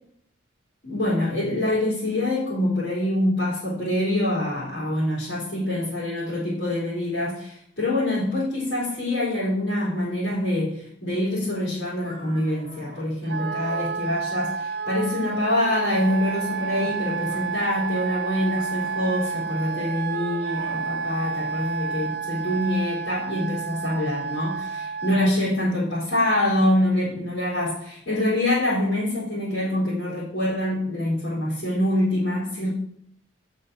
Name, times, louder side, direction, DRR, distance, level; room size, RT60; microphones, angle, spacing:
voice 1, 0.8-32.7, left 1 dB, 65° left, -9 dB, 4.2 m, -25 dB
sound 1, 12.0-13.9 14.5-15.0 15.4-17.0 17.3-18.0 18.5-20.9, equal, 30° right, 4.6 m, -45 dB
Wind instrument woodwind instrument, 13.3-25.3, right 5 dB, 55° right, 0.4 m, -30 dB
8.4 x 6.5 x 6.3 m, 0.67 s
head